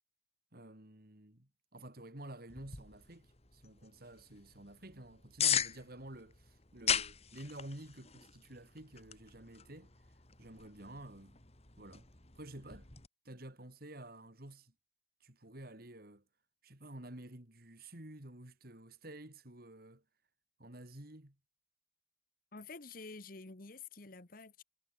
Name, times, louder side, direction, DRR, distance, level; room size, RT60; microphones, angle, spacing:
voice 1, 0.5-9.9 10.4-11.4 11.8-12.1 12.3-12.9 13.2-14.7 15.2-16.2 16.6-20.0 20.6-21.4, right 1 dB, 55° right, 3.2 m, -51 dB
sound 1, 2.5-13.1, left 8 dB, 35° left, 2.7 m, -40 dB
voice 2, 22.5-24.6, left 3 dB, 50° left, 1.5 m, -49 dB
head